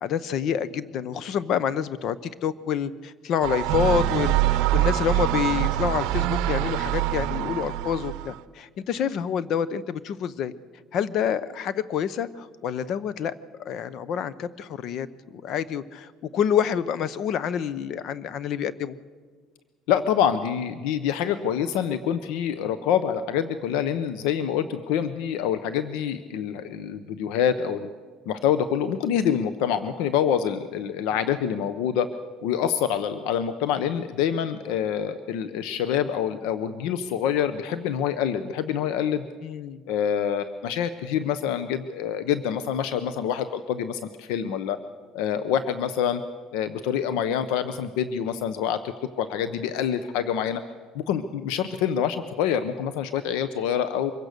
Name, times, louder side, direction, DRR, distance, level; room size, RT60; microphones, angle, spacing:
voice 1, 0.0-2.2 2.4-10.5 10.9-13.3 13.6-19.0 39.4-39.8, left 8 dB, 55° left, 17 dB, 0.7 m, -27 dB
sound 1, 3.4-8.4, right 14 dB, 80° right, 0.6 m, -24 dB
voice 2, 19.9-27.9 28.3-32.1 32.4-39.3 39.9-44.8 45.1-46.2 46.5-48.8 49.2-50.6 50.9-54.1, left 9 dB, 85° left, 12 dB, 0.8 m, -26 dB
24.5 x 16.0 x 6.7 m, 1.5 s
cardioid pair, 135°, 0 cm